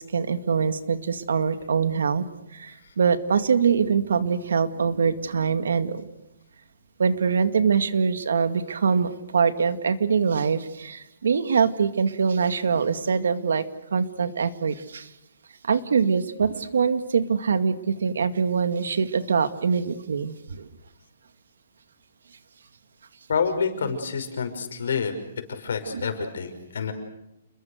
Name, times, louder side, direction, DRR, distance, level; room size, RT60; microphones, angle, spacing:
voice 1, 0.0-2.2 2.5-6.1 7.0-13.6 13.9-15.1 15.6-20.7 25.9-26.1, right 6 dB, 85° right, 11 dB, 2.1 m, -23 dB
voice 2, 23.3-25.1 25.5-26.9, left 5 dB, 65° left, 6 dB, 5.8 m, -28 dB
29.5 x 22.0 x 6.6 m, 0.88 s
hypercardioid pair, 175°, 0 cm